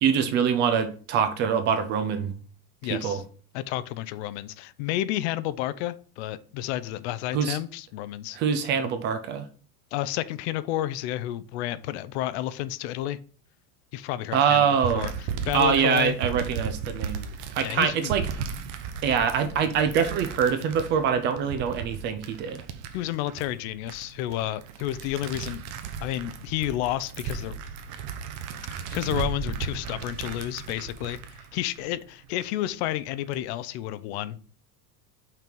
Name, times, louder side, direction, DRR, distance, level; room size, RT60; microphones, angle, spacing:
voice 1, 0.0-2.3 2.9-3.2 7.3-7.6 8.3-9.5 14.3-15.1 15.5-17.3 17.5-18.2 19.0-22.6, right 7 dB, 30° right, 0.4 m, -24 dB
voice 2, 2.8-3.2 3.5-8.4 9.9-13.2 13.9-14.6 14.9-16.2 17.6-18.1 22.9-25.6 26.0-27.6 28.7-34.4, left 14 dB, 55° left, 0.5 m, -31 dB
sound 1, 14.8-32.4 32.9-33.3, right 6 dB, 50° right, 0.9 m, -36 dB
5.9 x 4.5 x 5.3 m
cardioid pair, 175°, 40 cm